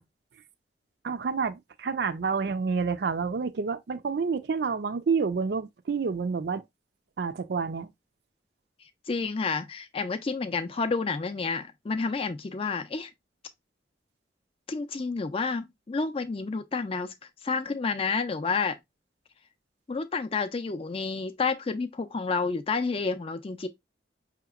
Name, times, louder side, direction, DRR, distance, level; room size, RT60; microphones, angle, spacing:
voice 1, 1.0-6.6 7.2-7.9, right 5 dB, 65° right, 0.4 m, -29 dB
voice 2, 9.1-13.1 14.7-17.1 17.4-18.8 19.9-23.7, left 4 dB, 30° left, 0.4 m, -30 dB
5.0 x 2.9 x 2.3 m
head